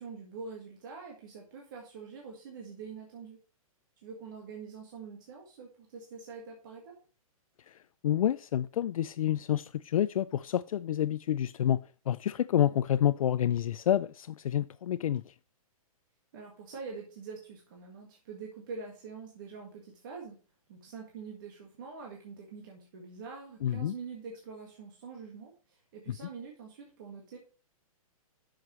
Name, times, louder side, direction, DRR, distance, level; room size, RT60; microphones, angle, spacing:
voice 1, 0.0-3.4 4.0-6.9 16.3-20.4 20.7-27.4, right 5 dB, 35° right, 1.7 m, -45 dB
voice 2, 8.0-11.8 12.1-15.2 23.6-23.9, left 11 dB, 70° left, 0.4 m, -28 dB
10.5 x 6.4 x 3.1 m
hypercardioid pair, 180°, 19 cm